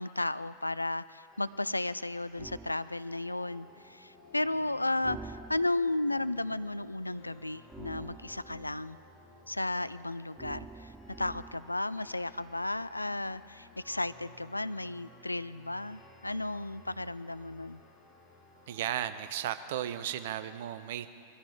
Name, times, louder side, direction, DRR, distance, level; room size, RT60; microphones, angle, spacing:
voice 1, 0.0-9.0 9.5-10.9 11.2-17.8, left 2 dB, 85° left, 16 dB, 0.3 m, -34 dB
sound 1, 1.3-19.1, left 2 dB, 25° left, 2.3 m, -57 dB
sound 2, 2.4-2.8 5.0-6.0 7.7-8.8 10.4-11.7, right 3 dB, 10° right, 0.4 m, -47 dB
voice 2, 18.7-21.1, right 11 dB, 55° right, 11 dB, 0.7 m, -35 dB
20.5 x 14.5 x 4.4 m, 2.4 s
figure-of-eight pair, 90°, 0 cm